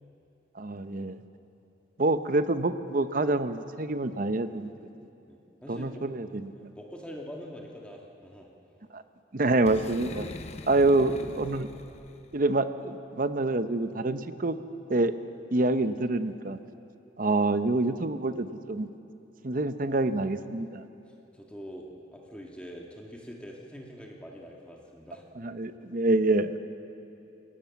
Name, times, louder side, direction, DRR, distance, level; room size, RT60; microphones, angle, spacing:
voice 1, 0.5-1.2 2.0-4.7 5.7-6.5 8.9-9.0 9.3-10.3 10.7-11.7 12.3-14.6 14.9-15.1 15.5-16.6 17.2-18.9 19.4-20.8 25.4-26.6, right 2 dB, 50° right, 10 dB, 0.8 m, -26 dB
voice 2, 5.3-5.9 6.5-8.5 10.8-11.4 21.3-25.6 26.0-26.1 26.5-26.6, equal, 5° left, -1 dB, 1.7 m, -44 dB
Boom, 9.6-12.4, left 2 dB, 35° left, 0.8 m, -42 dB
23.5 x 18.0 x 7.1 m, 2.7 s
head